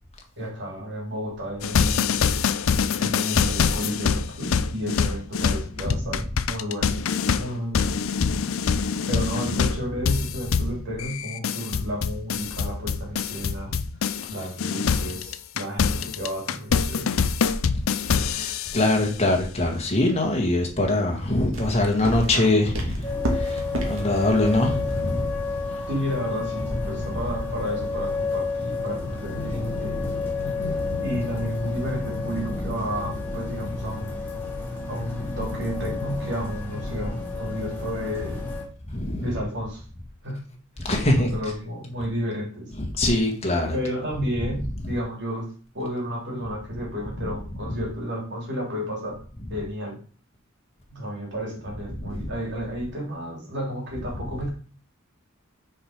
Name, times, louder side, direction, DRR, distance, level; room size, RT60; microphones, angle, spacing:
voice 1, 0.4-2.1 2.9-7.0 7.3-8.0 8.8-13.7 14.3-17.2 25.9-30.0 31.0-34.3 34.9-38.5 39.2-39.8 40.2-40.5 41.2-42.7 43.7-49.2 49.5-50.0 50.9-54.5, equal, 55° right, 3.3 m, -32 dB
sound 1, 1.6-14.3 14.6-19.0, left 6 dB, 75° left, 0.5 m, -25 dB
voice 2, 17.9-25.3 27.1-27.2 38.9-39.3 40.8-41.3 42.8-43.7 47.2-47.3 47.6-47.8 52.0-52.3, left 2 dB, 30° left, 1.7 m, -23 dB
sound 2, 21.5-32.2, right 1 dB, 75° right, 1.8 m, -36 dB
sound 3, 23.0-38.6, left 3 dB, 10° left, 3.1 m, -30 dB
6.3 x 5.0 x 5.1 m
head